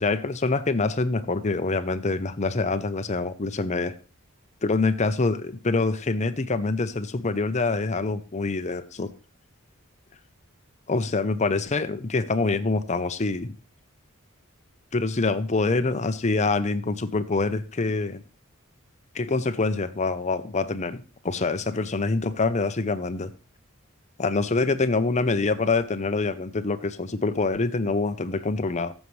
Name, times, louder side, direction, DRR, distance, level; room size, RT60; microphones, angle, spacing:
voice 1, 0.0-3.9 4.6-9.1 10.9-13.5 14.9-18.2 19.1-23.3 24.2-28.9, left 3 dB, 35° left, 12 dB, 0.6 m, -25 dB
14.5 x 7.3 x 3.2 m, 0.36 s
head